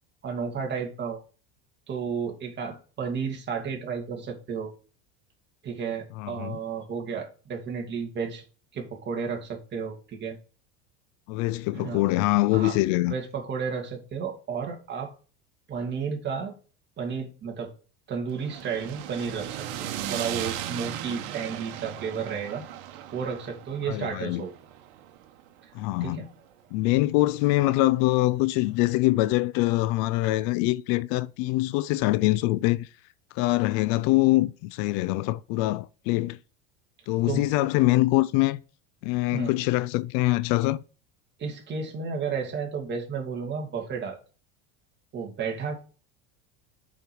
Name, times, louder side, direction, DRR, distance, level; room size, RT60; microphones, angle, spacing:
voice 1, 0.2-1.2 1.9-4.7 5.6-8.4 8.7-10.4 11.7-12.1 12.5-12.8 13.1-15.1 15.7-16.5 17.0-17.7 18.1-19.6 20.1-22.6 23.1-24.5 26.0-26.3 37.3-37.5 39.3-39.5 41.4-44.2 45.1-45.8, right 6 dB, 30° right, 2.6 m, -32 dB
voice 2, 6.2-6.6 11.3-13.1 23.9-24.4 25.7-26.3 26.7-32.9 33.4-36.4 37.1-38.6 39.0-40.8, left 18 dB, 60° left, 0.5 m, -24 dB
sound 1, 18.3-26.5, right 11 dB, 75° right, 1.4 m, -37 dB
7.0 x 5.2 x 6.1 m
supercardioid pair, 130°, 34 cm